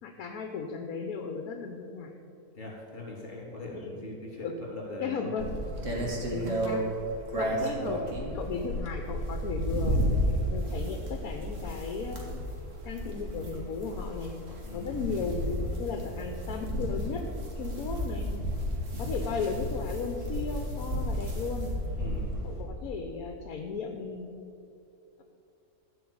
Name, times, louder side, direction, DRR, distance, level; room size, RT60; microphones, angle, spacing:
voice 1, 0.0-2.1 3.7-4.0 4.4-4.6 5.0-5.5 6.3-6.8 7.4-8.0 8.3-10.0 10.5-12.4 12.8-14.3 14.7-17.3 17.6-18.4 19.0-21.7 22.4-24.3, left 5 dB, 70° left, 4 dB, 1.3 m, -35 dB
voice 2, 2.5-5.3 5.9-6.3 7.3-7.7 14.6-15.0 18.9-19.1 22.0-22.4, left 2 dB, 35° left, -2 dB, 3.4 m, -42 dB
sound 1, 5.4-22.6, equal, 55° right, 2.2 m, -32 dB
14.5 x 5.4 x 8.6 m, 2.7 s
omnidirectional pair, 1.6 m